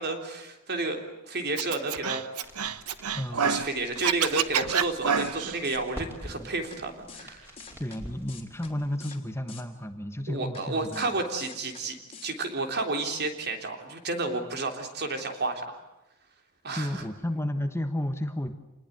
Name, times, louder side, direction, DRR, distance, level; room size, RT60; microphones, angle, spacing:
voice 1, 0.0-2.2 3.4-7.5 10.3-12.0 12.2-15.8 16.6-17.0, right 3 dB, 50° right, 5 dB, 3.5 m, -31 dB
Scratching (performance technique), 1.6-3.7 4.0-5.6, right 7 dB, 80° right, 1.1 m, -28 dB
sound 1, 2.4-9.0, equal, 10° right, 5.6 m, -47 dB
voice 2, 3.1-3.4 6.3-6.5 7.8-11.2 16.7-18.5, left 1 dB, 10° left, 8 dB, 1.3 m, -32 dB
sound 2, 4.8-4.9 5.2-5.3 5.6-5.8 6.7-6.8 7.1-7.3 7.6-8.0 8.3-8.7 9.0-9.2 9.5-9.6 10.5-10.6 10.9-11.1 11.4-11.8 12.1-12.3, left 6 dB, 25° left, 3.1 m, -46 dB
28.0 x 20.5 x 9.4 m, 0.94 s
head